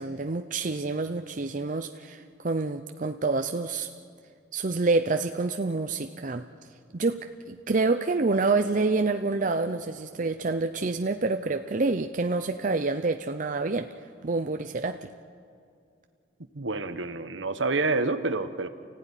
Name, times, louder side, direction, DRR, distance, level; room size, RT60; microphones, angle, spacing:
voice 1, 0.0-3.9 4.5-6.4 6.9-13.9 14.2-15.1, right 3 dB, 40° right, 7 dB, 0.6 m, -27 dB
voice 2, 16.5-18.7, right 3 dB, 70° right, 10 dB, 1.2 m, -28 dB
29.0 x 15.5 x 9.9 m, 2.3 s
head